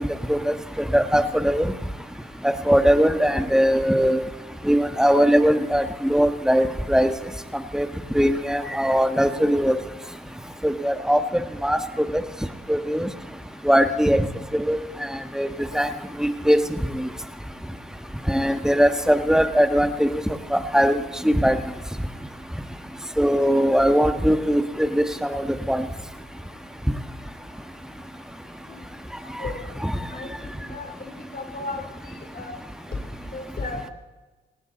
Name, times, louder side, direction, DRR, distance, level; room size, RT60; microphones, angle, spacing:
voice 1, 0.9-1.7 2.7-4.2 4.7-7.1 7.7-7.9 8.1-9.7 10.6-11.2 11.6-12.1 12.7-13.1 13.6-14.2 14.5-14.8 15.3-15.5 15.7-15.9 16.2-16.6 16.9-17.1 18.3-20.1 20.5-21.0 21.2-21.6 23.2-25.8 29.8-29.9, equal, 5° right, 9 dB, 1.4 m, -20 dB
voice 2, 30.7-31.8 32.3-32.6 33.3-33.9, left 3 dB, 50° left, 5 dB, 3.3 m, -34 dB
18.5 x 17.5 x 4.1 m, 1.2 s
cardioid pair, 75°, 20 cm